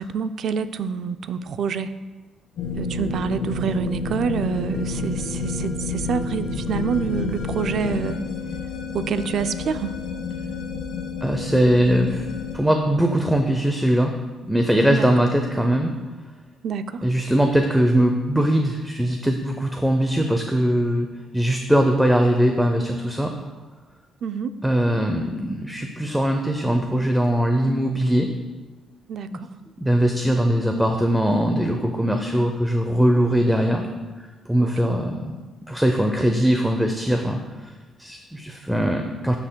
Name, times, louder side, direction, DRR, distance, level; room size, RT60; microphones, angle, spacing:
voice 1, 0.0-1.9 2.8-8.2 8.9-10.0 14.9-15.1 16.6-17.0 24.2-24.6 29.1-29.5 34.6-34.7, right 6 dB, 65° right, 11 dB, 0.4 m, -27 dB
sound 1, 2.6-12.5, left 3 dB, 80° left, 1.1 m, -29 dB
voice 2, 11.2-12.3 12.5-14.1 14.4-15.9 17.0-21.1 21.3-23.3 24.6-28.3 29.3-29.4 29.8-33.9 34.5-35.3 35.7-37.7 38.0-39.3, equal, 5° right, 4 dB, 0.6 m, -21 dB
13.0 x 5.8 x 2.3 m, 1.3 s
cardioid pair, 90°, 0 cm